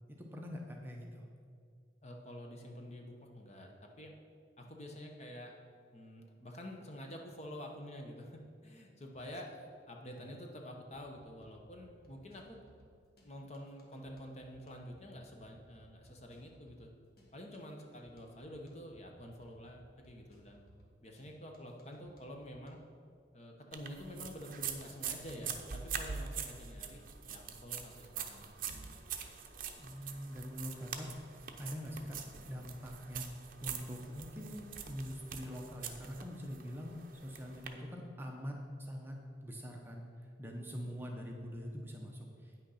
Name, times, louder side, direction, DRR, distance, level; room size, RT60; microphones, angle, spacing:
voice 1, 0.2-1.2 10.2-10.3 29.8-31.1 31.6-33.3 33.6-39.2 39.4-40.1 40.4-42.5, equal, 10° right, 0 dB, 0.8 m, -44 dB
voice 2, 2.0-4.1 4.6-5.5 5.9-12.6 13.2-16.9 17.3-20.6 21.0-22.8 23.3-28.5, equal, 35° left, 2 dB, 1.0 m, -48 dB
sound 1, 10.9-22.7, equal, 55° left, 1.5 m, -63 dB
sound 2, 23.7-37.7, right 7 dB, 45° right, 0.7 m, -44 dB
9.1 x 6.4 x 5.7 m, 2.2 s
head